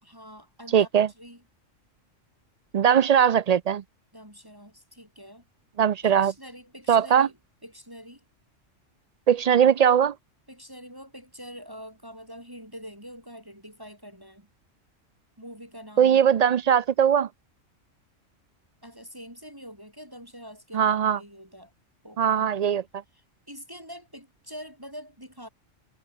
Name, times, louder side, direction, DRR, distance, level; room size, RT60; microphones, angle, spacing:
voice 1, 0.1-0.9 1.2-1.4 4.1-5.5 6.0-7.4 7.6-8.2 10.5-14.5 15.4-16.2 18.8-21.7 22.0-22.8 23.1-25.5, equal, 15° right, 7.4 m, -45 dB
voice 2, 0.7-1.1 2.7-3.8 5.8-6.3 6.9-7.3 9.3-10.1 16.0-17.3 20.7-21.2 22.2-22.8, right 8 dB, 75° right, 0.3 m, -20 dB
omnidirectional pair, 1.3 m